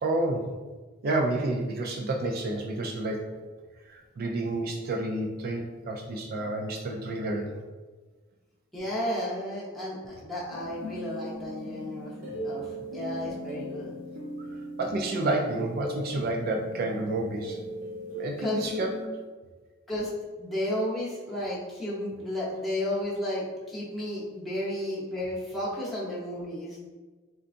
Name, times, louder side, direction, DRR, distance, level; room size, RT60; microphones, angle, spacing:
voice 1, 0.0-0.5 1.0-3.3 3.9-7.5 14.8-17.6 18.2-18.9, right 2 dB, 50° right, 1 dB, 0.4 m, -30 dB
voice 2, 8.7-12.7 12.9-13.9 18.4-18.7 19.9-20.1 20.4-26.8, left 1 dB, ahead, -8 dB, 0.8 m, -33 dB
sound 1, 10.5-19.1, equal, 80° right, 0.8 m, -38 dB
3.8 x 2.3 x 2.5 m, 1.3 s
head